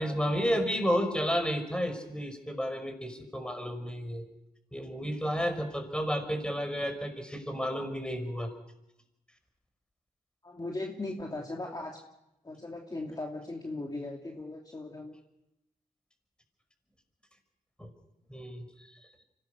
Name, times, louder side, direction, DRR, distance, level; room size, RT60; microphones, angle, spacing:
voice 1, 0.0-4.2 4.7-8.5 17.8-17.9 18.3-18.9, equal, 5° left, 7 dB, 5.4 m, -31 dB
voice 2, 10.4-12.0 12.4-15.2, left 2 dB, 25° left, 0 dB, 2.7 m, -38 dB
25.0 x 17.5 x 6.6 m, 0.89 s
supercardioid pair, 50°, 16 cm